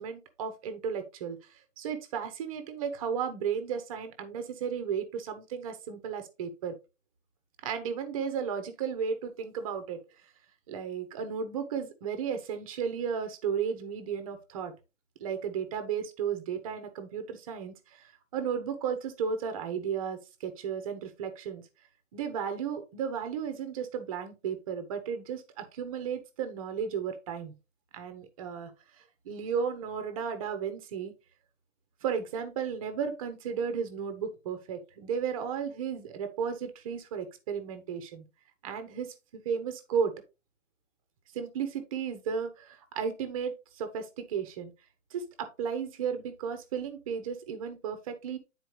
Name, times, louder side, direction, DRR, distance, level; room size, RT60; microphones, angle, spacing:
voice 1, 0.0-6.7 7.6-10.0 10.7-14.7 15.2-21.6 22.1-27.5 27.9-28.7 29.0-31.1 32.0-38.2 38.6-40.1 41.3-44.7 45.1-48.4, right 7 dB, 25° right, 9 dB, 1.0 m, -34 dB
10.0 x 4.4 x 3.1 m, 0.27 s
hypercardioid pair, 165°, 39 cm